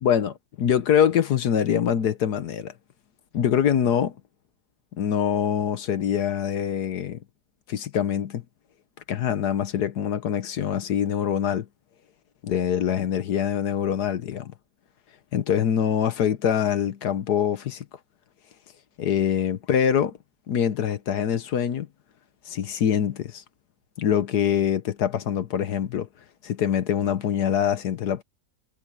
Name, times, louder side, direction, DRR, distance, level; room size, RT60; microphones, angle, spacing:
voice 1, 0.0-2.7 3.3-4.1 5.0-7.2 7.7-8.4 9.1-11.7 12.4-14.5 15.3-17.8 19.0-20.1 20.5-21.9 22.5-23.4 24.0-26.1 26.4-28.2, left 9 dB, 60° left, 1.4 m, -24 dB
omnidirectional pair, 2.1 m